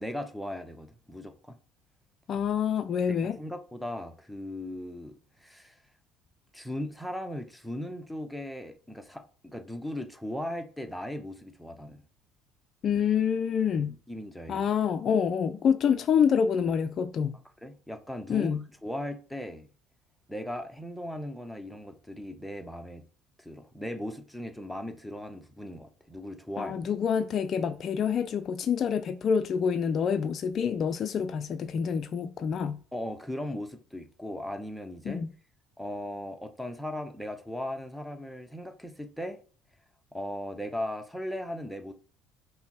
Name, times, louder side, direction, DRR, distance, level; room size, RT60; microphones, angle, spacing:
voice 1, 0.0-1.6 3.1-5.8 6.5-12.0 14.1-14.6 17.6-18.5 18.8-19.7 20.3-23.0 23.4-26.8 32.9-35.2 35.8-39.4 40.1-41.9, left 1 dB, ahead, 0.7 m, -38 dB
voice 2, 2.3-3.4 12.8-14.0 14.5-17.4 18.3-18.6 26.6-32.8 35.1-35.3, left 7 dB, 45° left, 0.3 m, -27 dB
5.5 x 2.1 x 4.2 m
hypercardioid pair, 60°, 0 cm